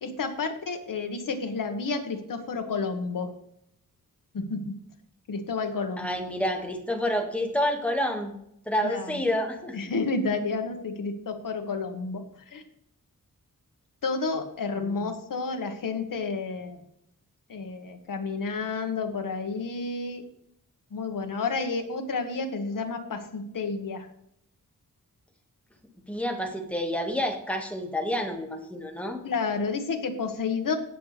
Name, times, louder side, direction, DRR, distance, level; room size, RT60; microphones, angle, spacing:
voice 1, 0.0-3.3 4.3-4.7 5.3-6.1 8.8-9.2 9.7-12.6 14.0-16.8 17.5-20.2 20.9-24.1 29.2-30.7, left 4 dB, 75° left, 5 dB, 1.6 m, -30 dB
voice 2, 6.0-8.3 8.7-9.9 14.8-14.9 26.1-29.2, equal, 5° left, 2 dB, 1.8 m, -29 dB
17.5 x 6.6 x 3.4 m, 0.74 s
wide cardioid pair, 155°, 33 cm